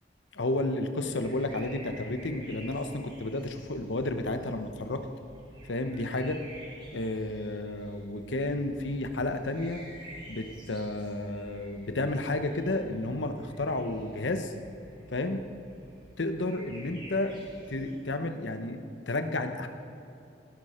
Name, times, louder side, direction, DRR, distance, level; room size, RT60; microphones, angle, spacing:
voice 1, 0.3-5.0 5.7-6.4 6.9-9.8 10.3-14.5 15.1-15.4 16.2-17.3 17.7-18.8 19.1-19.7, left 2 dB, 90° left, 7 dB, 1.0 m, -31 dB
sound 1, 1.0-17.9, equal, 30° right, 3.8 m, -50 dB
18.0 x 11.5 x 4.4 m, 2.8 s
head